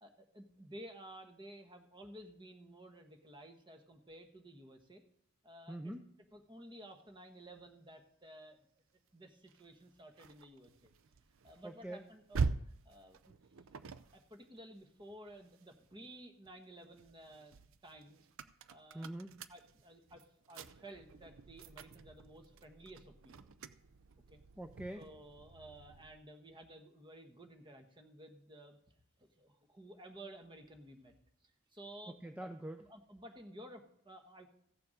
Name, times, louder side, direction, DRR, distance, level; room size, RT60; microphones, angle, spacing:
voice 1, 0.0-5.0 5.4-5.9 6.3-8.6 9.1-10.9 11.4-13.3 13.7-13.9 14.1-17.6 17.8-18.3 18.7-19.1 19.5-23.5 24.3-24.4 24.9-28.8 29.2-31.1 31.7-32.1 32.4-32.5 32.8-34.5, right 1 dB, 20° right, 5 dB, 1.3 m, -54 dB
voice 2, 5.7-6.1 11.6-12.0 18.9-19.4 24.6-25.0 32.1-32.8, right 1 dB, 5° right, 7 dB, 0.5 m, -44 dB
sound 1, 9.5-16.0 16.4-26.2, right 4 dB, 60° right, 0.6 m, -45 dB
15.5 x 7.0 x 5.1 m, 0.68 s
head